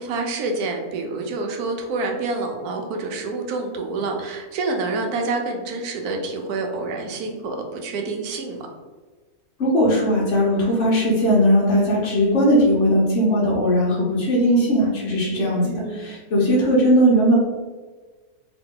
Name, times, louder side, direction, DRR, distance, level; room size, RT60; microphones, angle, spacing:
voice 1, 0.0-8.6 15.6-16.1, right 3 dB, 85° right, 3 dB, 1.2 m, -27 dB
voice 2, 9.6-17.3, equal, 50° left, -5 dB, 1.1 m, -18 dB
2.9 x 2.8 x 3.7 m, 1.3 s
omnidirectional pair, 1.6 m